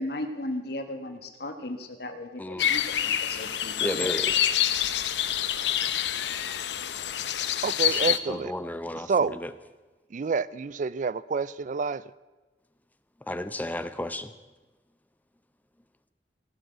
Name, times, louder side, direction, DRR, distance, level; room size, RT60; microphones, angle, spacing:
voice 1, 0.0-4.1, left 1 dB, 65° left, 6 dB, 1.5 m, -36 dB
sound 1, 2.6-8.2, left 11 dB, 80° left, 0.7 m, -27 dB
voice 2, 3.8-4.4 8.3-9.1 9.4-9.5 13.3-14.3, left 1 dB, 10° left, 11 dB, 0.6 m, -32 dB
voice 3, 7.6-8.5 9.1-9.4 10.1-12.0, right 5 dB, 45° right, 19 dB, 0.4 m, -28 dB
18.0 x 6.4 x 8.0 m, 1.2 s
head